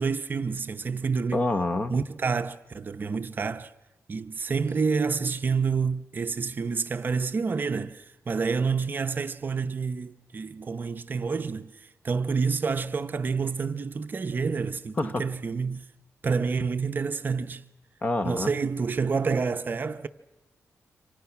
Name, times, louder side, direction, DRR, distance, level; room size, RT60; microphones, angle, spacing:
voice 1, 0.0-1.4 1.9-3.7 4.1-11.7 12.0-15.8 16.2-17.6 18.2-20.1, right 5 dB, 40° right, 0.7 m, -28 dB
voice 2, 1.3-2.0 15.0-15.3 18.0-18.5, left 2 dB, 30° left, 1.0 m, -27 dB
28.0 x 25.5 x 5.9 m
wide cardioid pair, 150°, 5 cm